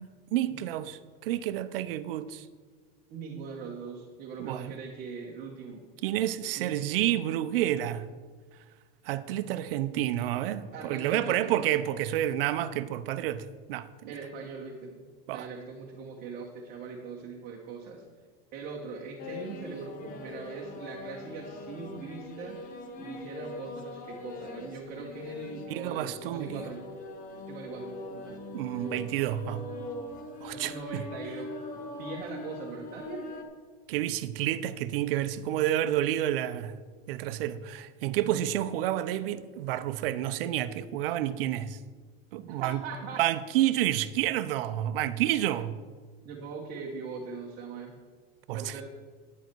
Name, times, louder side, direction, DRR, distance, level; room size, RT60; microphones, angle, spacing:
voice 1, 0.0-2.5 4.4-4.7 6.0-8.1 9.0-14.2 15.3-15.5 25.7-26.6 28.5-29.6 30.4-31.0 33.9-36.7 37.1-41.8 42.3-42.8 43.2-45.8 48.5-48.8, right 12 dB, 65° right, 0.7 m, -29 dB
voice 2, 3.1-5.8 6.6-6.8 10.7-11.7 14.1-15.0 15.3-18.0 18.5-22.7 23.0-26.8 27.5-28.4 30.5-33.3 42.4-43.2 46.2-47.9 48.5-48.8, right 4 dB, 30° right, 1.2 m, -41 dB
sound 1, 19.2-33.4, left 2 dB, 25° left, 1.1 m, -42 dB
10.5 x 9.6 x 4.6 m
supercardioid pair, 160°, 31 cm